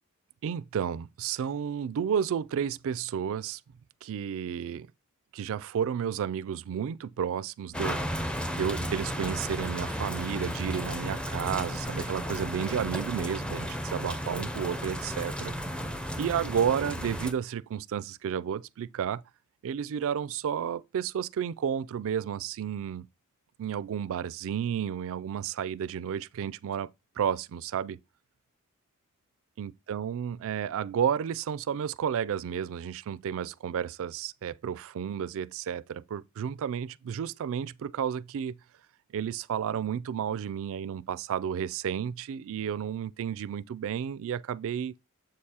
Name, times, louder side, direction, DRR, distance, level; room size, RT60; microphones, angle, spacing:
voice 1, 0.4-3.6 4.0-4.9 5.3-15.5 16.2-19.2 19.6-23.1 23.6-26.9 27.2-28.0 29.6-38.6 39.1-45.0, right 8 dB, 65° right, 0.3 m, -32 dB
sound 1, 7.7-17.3, equal, 5° left, 0.5 m, -34 dB
7.6 x 6.5 x 2.8 m
head